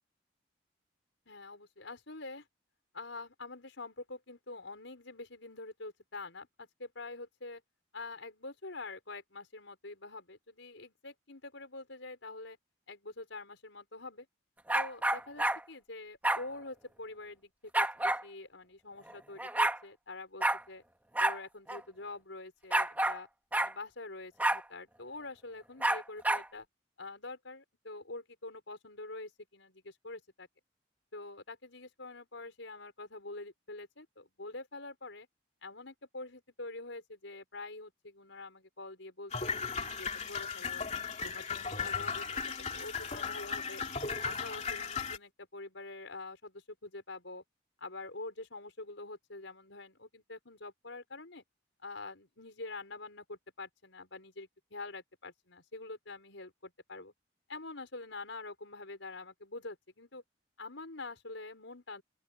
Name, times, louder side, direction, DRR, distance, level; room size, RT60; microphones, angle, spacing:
voice 1, 1.3-2.5 2.9-7.6 7.9-12.6 12.9-14.3 14.7-20.8 21.2-23.3 23.6-26.6 27.0-30.5 31.1-35.3 35.6-39.3 39.6-40.8 41.2-43.8 44.2-47.4 47.8-51.4 51.8-57.1 57.5-60.2 60.6-62.0, left 3 dB, 85° left, 5.1 m, -46 dB
sound 1, 14.7-15.6 16.2-16.4 17.7-18.2 19.1-19.2 19.4-19.8 20.4-20.6 21.2-21.4 21.7-21.8 22.7-23.2 23.5-23.7 24.4-24.6 25.8-26.5, right 1 dB, 10° right, 1.8 m, -29 dB
sound 2, 39.3-45.2, left 5 dB, 35° left, 2.8 m, -36 dB
open air
head